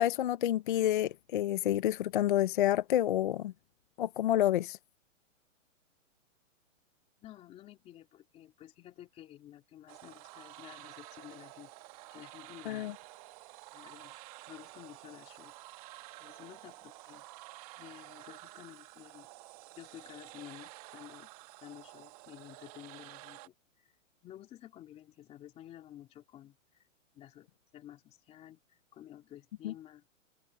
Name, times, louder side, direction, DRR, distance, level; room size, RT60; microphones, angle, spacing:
voice 1, 0.0-3.5 4.0-4.8 12.7-12.9 29.6-29.7, left 12 dB, 40° left, 0.6 m, -29 dB
voice 2, 7.2-11.7 12.1-12.9 13.7-14.2 14.5-15.5 15.8-15.9 16.2-17.3 17.8-19.3 19.7-21.3 21.6-23.9 24.2-26.8 27.1-30.1, left 12 dB, 15° left, 2.4 m, -52 dB
sound 1, 9.9-23.5, right 19 dB, 30° right, 1.5 m, -51 dB
hypercardioid pair, 165°, 39 cm